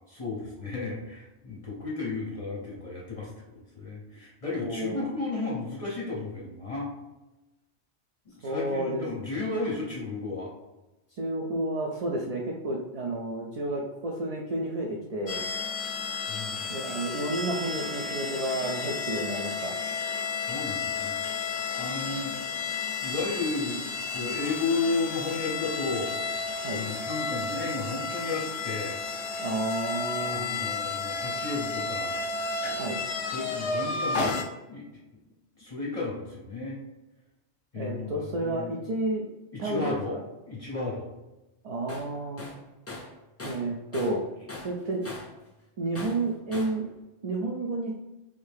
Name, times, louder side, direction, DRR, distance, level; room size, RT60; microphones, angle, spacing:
voice 1, 0.1-6.9 8.4-10.5 16.3-16.7 20.3-21.4 21.7-22.4 23.0-23.8 24.1-26.1 26.7-29.0 30.2-32.3 33.3-34.4 34.7-35.0 35.6-36.8 37.7-38.7 39.5-40.2 40.5-41.1, left 3 dB, 35° left, -5 dB, 0.8 m, -33 dB
voice 2, 4.6-5.1 8.4-9.0 11.2-15.4 16.7-19.7 26.6-26.8 29.4-30.7 32.7-33.0 37.8-39.3 39.6-40.2 41.6-42.5 43.4-44.2 44.6-45.1 45.8-46.9 47.2-47.9, right 2 dB, 55° right, -1 dB, 0.4 m, -31 dB
sound 1, 15.3-34.4, left 4 dB, 65° left, 0.8 m, -32 dB
Tools, 41.9-42.1 42.4-44.2 44.5-45.4 46.0-46.8, left 2 dB, 20° left, 0.4 m, -41 dB
3.5 x 2.7 x 3.4 m, 1.0 s
omnidirectional pair, 1.2 m